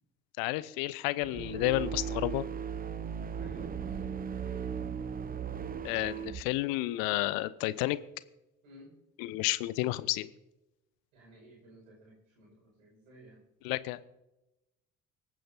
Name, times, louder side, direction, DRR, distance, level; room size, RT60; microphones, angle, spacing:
voice 1, 0.4-2.4 5.8-8.0 9.2-10.3 13.6-14.0, left 17 dB, 55° left, 18 dB, 0.7 m, -31 dB
sound 1, 1.2-6.4, right 7 dB, 20° right, 0.7 m, -37 dB
voice 2, 3.4-4.9 8.6-8.9 11.1-13.4, right 1 dB, 70° right, -2 dB, 5.7 m, -55 dB
25.0 x 9.4 x 2.7 m, 0.97 s
figure-of-eight pair, 50°, 42 cm